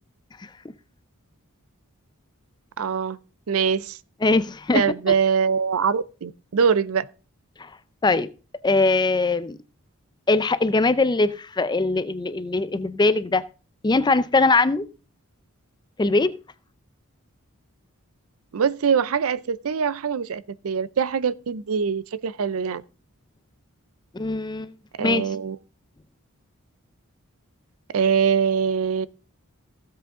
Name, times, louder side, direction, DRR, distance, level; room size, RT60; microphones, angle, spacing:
voice 1, 2.8-3.2 3.5-4.0 4.7-7.1 18.5-22.8 25.0-25.6 27.9-29.1, right 6 dB, 70° right, 0.5 m, -23 dB
voice 2, 4.2-4.8 7.6-7.7 8.0-8.3 8.6-9.6 10.3-13.4 13.8-14.9 16.0-16.3 24.1-24.7 25.0-25.2, left 3 dB, 20° left, 0.4 m, -21 dB
15.5 x 7.8 x 3.7 m
head